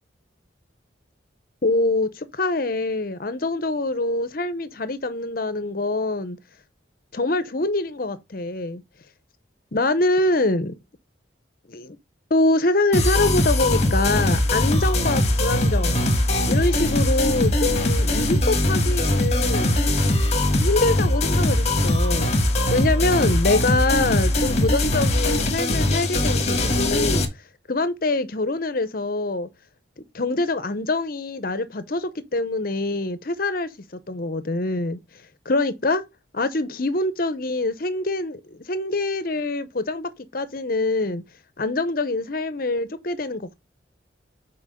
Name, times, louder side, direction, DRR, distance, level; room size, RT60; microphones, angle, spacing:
voice 1, 1.6-6.4 7.1-8.8 9.7-10.7 11.7-12.0 12.3-16.1 16.5-19.8 20.6-22.3 22.7-27.3 27.7-29.5 30.1-33.7 34.1-35.0 35.5-36.0 36.3-41.2 41.6-43.4, left 2 dB, 50° left, 0.8 m, -24 dB
sound 1, 12.9-27.2, left 1 dB, 35° left, 1.4 m, -21 dB
6.2 x 4.5 x 5.0 m
head